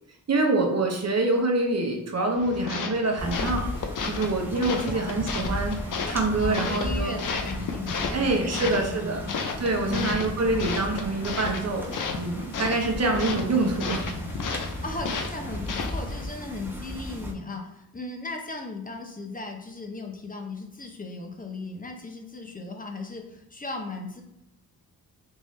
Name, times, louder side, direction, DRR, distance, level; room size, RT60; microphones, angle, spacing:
voice 1, 0.3-3.6 4.1-5.7 6.1-7.1 8.1-9.2 9.6-14.1, right 2 dB, 45° right, 2 dB, 0.9 m, -26 dB
sound 1, 2.4-16.2, left 5 dB, 55° left, 0.6 m, -34 dB
sound 2, 3.2-17.3, equal, 5° right, 0.9 m, -35 dB
voice 2, 4.5-5.5 6.4-9.3 9.8-10.3 13.2-13.7 14.8-24.2, left 3 dB, 20° left, 3 dB, 0.8 m, -37 dB
3.7 x 2.6 x 3.2 m, 0.84 s
cardioid pair, 65°, 37 cm